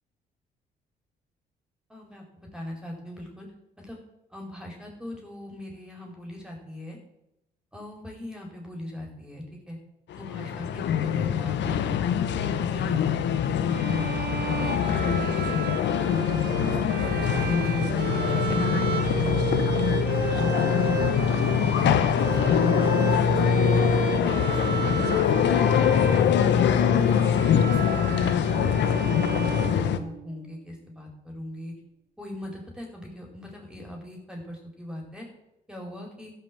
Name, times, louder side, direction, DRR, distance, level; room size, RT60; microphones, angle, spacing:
voice 1, 1.9-3.5 3.8-4.0 4.3-7.0 7.7-9.8 10.2-12.0 12.5-13.2 13.5-14.1 14.6-15.5 16.0-16.4 16.7-20.0 20.4-23.7 24.2-26.2 26.5-26.6 27.0-31.7 32.2-35.3 35.7-36.3, left 1 dB, 5° right, -1 dB, 4.6 m, -39 dB
sound 1, 10.1-30.0, left 8 dB, 65° left, 0.9 m, -23 dB
sound 2, 13.7-30.5, right 6 dB, 55° right, 1.7 m, -33 dB
13.0 x 5.9 x 7.6 m, 0.86 s
hypercardioid pair, 50°, 20 cm